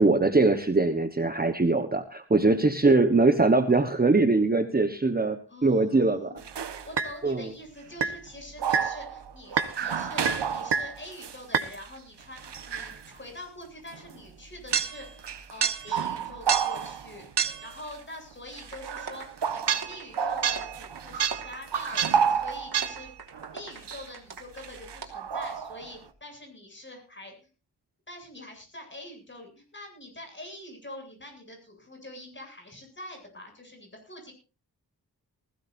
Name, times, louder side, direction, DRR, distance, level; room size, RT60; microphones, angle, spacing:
voice 1, 0.0-6.3 7.2-7.5, right 3 dB, 25° right, 8 dB, 1.2 m, -22 dB
voice 2, 5.5-23.2 23.5-27.5 28.1-34.3, left 1 dB, 30° left, 3 dB, 8.0 m, -45 dB
sound 1, 6.4-7.2 8.0-8.2 8.6-11.9 12.4-13.1 13.9-14.0 14.7-17.9 18.6-23.6 23.9-24.1 24.6-25.9, right 7 dB, 85° right, 1.5 m, -29 dB
sound 2, 18.7-24.7 25.0-25.1, right 4 dB, 65° right, 3.1 m, -42 dB
20.5 x 16.0 x 2.7 m, 0.34 s
wide cardioid pair, 120°, 40 cm